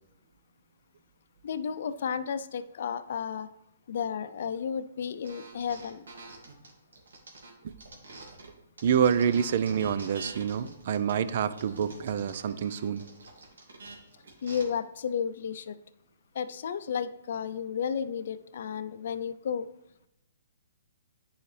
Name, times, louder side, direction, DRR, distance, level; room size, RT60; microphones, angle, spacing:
voice 1, 1.4-3.5 3.9-6.1 14.4-15.8 16.3-19.7, left 7 dB, 60° left, 12 dB, 0.5 m, -33 dB
sound 1, 5.2-8.5 8.8-14.6, right 3 dB, 85° right, 2.2 m, -47 dB
voice 2, 8.8-13.0, right 8 dB, 55° right, 14 dB, 0.5 m, -27 dB
9.4 x 5.6 x 3.3 m, 0.85 s
hypercardioid pair, 150°, 0 cm